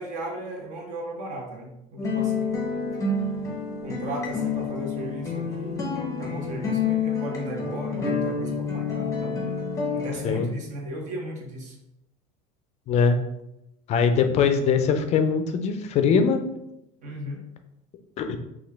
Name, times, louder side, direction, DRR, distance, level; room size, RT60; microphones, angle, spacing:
voice 1, 0.0-2.5 3.8-9.4 9.9-11.8 17.0-17.4, right 1 dB, 45° right, 1 dB, 0.8 m, -36 dB
sound 1, 2.0-10.3, left 4 dB, 20° left, 0.8 m, -28 dB
voice 2, 12.9-13.2 13.9-16.4 18.2-18.4, left 6 dB, 40° left, 7 dB, 0.4 m, -21 dB
2.8 x 2.4 x 3.3 m, 0.84 s
supercardioid pair, 120°, 18 cm